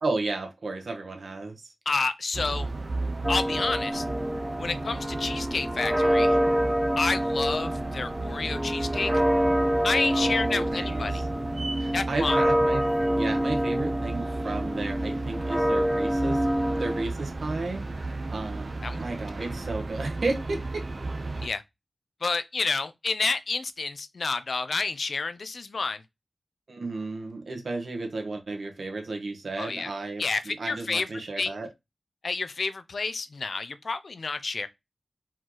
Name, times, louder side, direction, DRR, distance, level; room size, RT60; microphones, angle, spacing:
voice 1, 0.0-1.7 10.0-11.3 11.8-20.8 26.7-31.7, right 3 dB, 80° right, 1.3 m, -33 dB
voice 2, 1.9-2.7 3.3-4.0 4.6-6.4 7.0-9.1 9.8-11.2 11.9-12.4 18.8-19.0 19.4-19.5 21.4-21.6 22.2-26.0 29.6-29.9 30.2-31.1 31.4-31.6 32.2-34.7, left 4 dB, 75° left, 0.6 m, -29 dB
sound 1, 2.3-21.5, right 2 dB, 55° right, 0.7 m, -34 dB
sound 2, 3.2-17.0, equal, 5° right, 0.4 m, -27 dB
4.5 x 3.0 x 3.9 m
wide cardioid pair, 70°, 0 cm